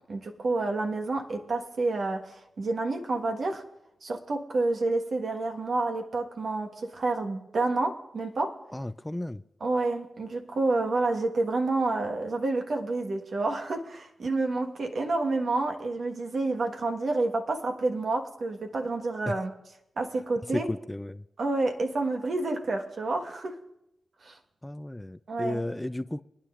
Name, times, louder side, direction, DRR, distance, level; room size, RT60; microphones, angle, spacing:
voice 1, 0.1-3.6 4.0-8.6 9.6-19.5 20.0-20.7 21.4-23.6 24.2-24.4 25.3-25.6, right 2 dB, 65° right, 1.5 m, -29 dB
voice 2, 8.7-9.4 19.3-19.4 20.5-21.2 24.6-26.2, left 1 dB, 10° left, 0.4 m, -33 dB
25.0 x 9.8 x 2.5 m
cardioid pair, 50°, 0 cm